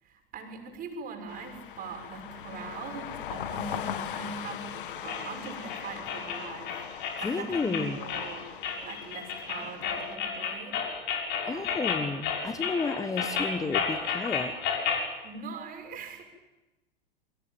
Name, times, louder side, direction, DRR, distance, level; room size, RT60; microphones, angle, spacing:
voice 1, 0.0-8.5 8.8-10.8 11.4-11.8 15.2-16.2, right 4 dB, 30° right, 4 dB, 6.7 m, -41 dB
sound 1, 1.3-10.2, left 9 dB, 60° left, 1.9 m, -40 dB
sound 2, 5.1-15.1, left 6 dB, 40° left, 6.4 m, -32 dB
voice 2, 7.2-8.0 11.5-14.5, left 4 dB, 10° left, 11 dB, 1.3 m, -32 dB
29.0 x 24.0 x 7.6 m, 1.0 s
figure-of-eight pair, 95°, 29 cm